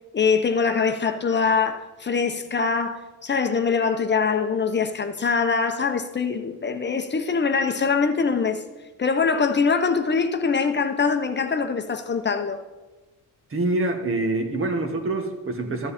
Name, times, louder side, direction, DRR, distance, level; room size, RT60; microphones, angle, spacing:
voice 1, 0.1-8.6 9.0-12.6, left 5 dB, 35° left, 0.8 m, -23 dB
voice 2, 13.5-15.9, right 2 dB, 40° right, 1.7 m, -25 dB
13.5 x 9.5 x 4.3 m
cardioid pair, 110°, 32 cm